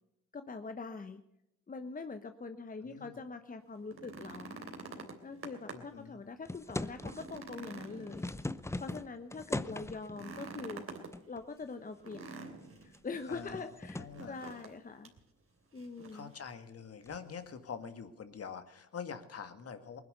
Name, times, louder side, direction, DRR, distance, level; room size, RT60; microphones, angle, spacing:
voice 1, 0.3-1.2 1.7-4.6 5.2-8.3 8.8-10.9 11.3-12.2 12.8-15.1 15.7-16.3, left 4 dB, 25° left, 9 dB, 1.0 m, -43 dB
voice 2, 2.8-3.2 5.7-6.2 9.6-10.0 13.3-14.4 16.1-20.0, left 6 dB, 45° left, 9 dB, 1.9 m, -45 dB
sound 1, 3.8-6.0 6.4-6.5 6.9-8.8 10.1-11.1 12.0-13.0 14.1-14.8 15.0-15.2 15.8-16.3 17.5-17.6, right 3 dB, 45° right, 3.1 m, -47 dB
sound 2, 6.4-7.4 7.9-10.2 11.1-11.6 12.0-12.1 12.7-14.2 17.1-17.3, left 2 dB, 10° left, 0.7 m, -40 dB
19.5 x 10.5 x 6.7 m, 0.84 s
supercardioid pair, 65°, 32 cm